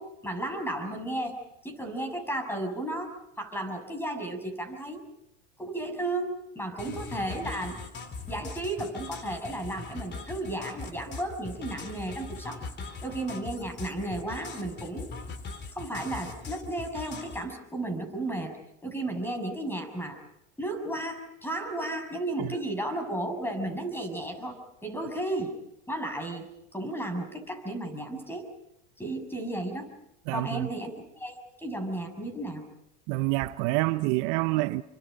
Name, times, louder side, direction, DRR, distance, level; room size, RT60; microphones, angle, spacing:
voice 1, 0.0-1.4 1.6-5.0 5.6-7.8 8.3-12.6 13.0-15.1 15.7-18.6 18.8-20.2 20.6-25.6 25.9-28.5 29.0-29.9 30.3-30.9 31.2-32.6, right 1 dB, 5° left, 6.8 m, -34 dB
sound 1, 6.8-17.4, left 4 dB, 30° left, 3.0 m, -41 dB
voice 2, 30.3-30.7 33.1-34.8, right 20 dB, 60° right, 0.9 m, -27 dB
29.5 x 24.5 x 5.2 m
hypercardioid pair, 100°, 34 cm